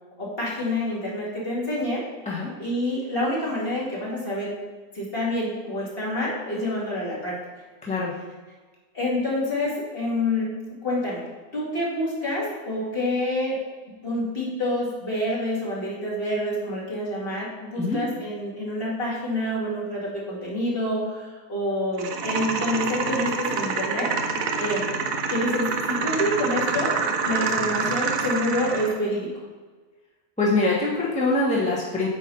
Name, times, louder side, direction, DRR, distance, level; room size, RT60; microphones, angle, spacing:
voice 1, 0.2-2.0 2.6-4.5 4.9-7.4 8.9-10.6 10.8-11.3 11.5-13.6 14.0-24.1 24.6-24.9 25.3-29.3, left 1 dB, 40° left, -6 dB, 2.3 m, -27 dB
voice 2, 7.8-8.1 17.8-18.0 30.4-32.1, left 2 dB, 5° left, -6 dB, 1.1 m, -23 dB
sound 1, 22.0-29.0, right 5 dB, 70° right, 1.1 m, -27 dB
9.0 x 3.1 x 5.5 m, 1.4 s
omnidirectional pair, 1.6 m